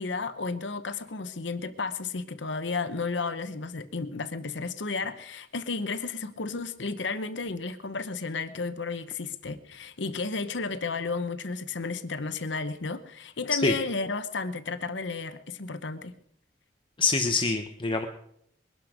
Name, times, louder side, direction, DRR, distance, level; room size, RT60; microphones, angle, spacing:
voice 1, 0.0-16.1, left 4 dB, 80° left, 11 dB, 1.0 m, -33 dB
voice 2, 17.0-18.1, left 3 dB, 30° left, 5 dB, 1.0 m, -25 dB
22.0 x 12.0 x 5.1 m, 0.71 s
head